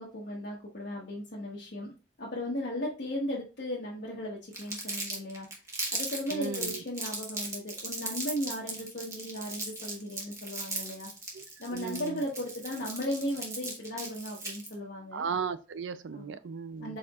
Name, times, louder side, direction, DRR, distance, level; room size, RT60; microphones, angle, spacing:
voice 1, 0.0-1.9 2.2-5.5 5.9-11.1 11.6-15.3 16.1-16.4 16.8-17.0, left 1 dB, 65° left, 1.0 m, -36 dB
Crumpling crinkling, 4.5-14.7, right 2 dB, 15° right, 1.1 m, -37 dB
voice 2, 6.3-6.8 11.3-11.4 11.7-12.3 15.1-17.0, right 6 dB, 85° right, 0.4 m, -36 dB
4.3 x 4.1 x 2.4 m
head